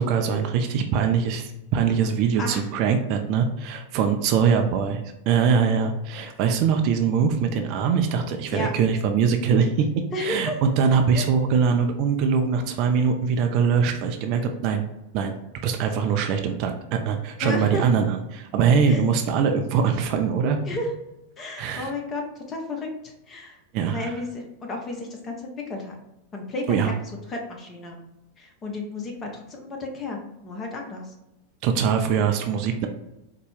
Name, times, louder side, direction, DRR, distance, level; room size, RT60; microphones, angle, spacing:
voice 1, 0.0-9.9 10.2-14.8 15.1-15.3 15.6-20.6 21.6-21.9 23.7-24.1 26.7-26.9 31.6-32.9, right 6 dB, 40° right, 5 dB, 0.4 m, -22 dB
voice 2, 10.1-10.6 11.1-11.3 17.4-17.9 18.9-19.0 20.7-20.9 21.4-23.6 23.9-26.0 26.3-26.9 27.3-28.0 28.4-31.1, left 2 dB, 25° left, 1 dB, 0.8 m, -32 dB
4.2 x 2.2 x 3.2 m, 0.92 s
figure-of-eight pair, 90°, 0 cm